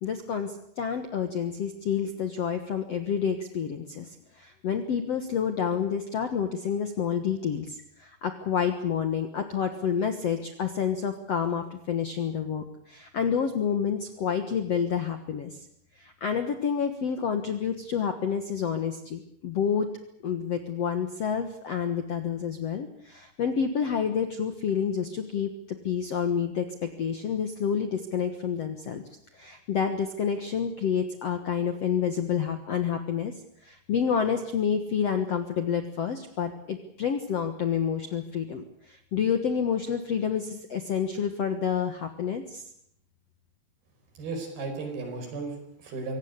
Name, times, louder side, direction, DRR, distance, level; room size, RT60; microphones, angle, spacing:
voice 1, 0.0-15.7 16.0-19.9 20.2-25.5 25.8-29.0 29.3-33.3 33.6-42.6, left 7 dB, 60° left, 8 dB, 1.7 m, -29 dB
voice 2, 44.2-46.2, right 3 dB, 65° right, 5 dB, 6.6 m, -35 dB
24.5 x 17.5 x 8.3 m, 0.72 s
omnidirectional pair, 4.7 m